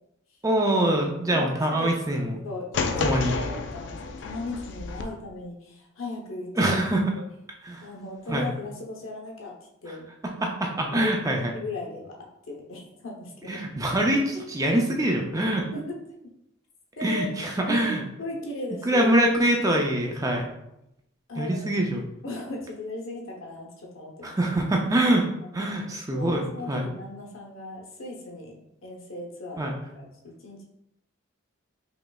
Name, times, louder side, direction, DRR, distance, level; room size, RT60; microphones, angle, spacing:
voice 1, 0.4-2.4 3.0-3.3 6.6-7.1 7.6-7.9 8.3-8.5 9.9-10.0 10.4-11.5 13.5-15.7 17.0-18.0 18.9-20.5 21.4-22.0 24.2-25.3 25.5-26.8 29.6-29.7, right 1 dB, 15° right, 1 dB, 0.4 m, -24 dB
voice 2, 1.1-2.2 2.4-6.8 7.8-10.1 10.9-13.6 15.4-16.0 17.0-17.3 17.7-17.9 18.2-19.1 21.3-21.7 22.2-24.4 25.4-25.8 26.1-30.6, left 2 dB, 80° left, -1 dB, 0.9 m, -37 dB
sound 1, 2.7-5.0, left 4 dB, 60° left, 0.4 m, -30 dB
5.0 x 3.1 x 2.3 m, 0.83 s
head